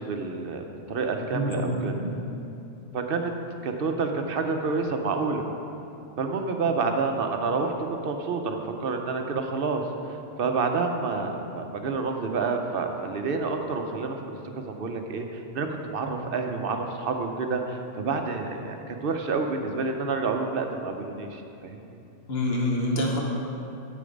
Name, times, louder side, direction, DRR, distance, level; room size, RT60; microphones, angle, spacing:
voice 1, 0.0-1.9 2.9-3.3 3.6-5.4 6.2-7.7 8.0-22.0, right 4 dB, 55° right, 4 dB, 0.8 m, -29 dB
voice 2, 1.2-2.1 22.3-23.2, left 1 dB, 55° left, -1 dB, 1.4 m, -27 dB
8.5 x 6.7 x 5.2 m, 2.8 s
omnidirectional pair, 1.3 m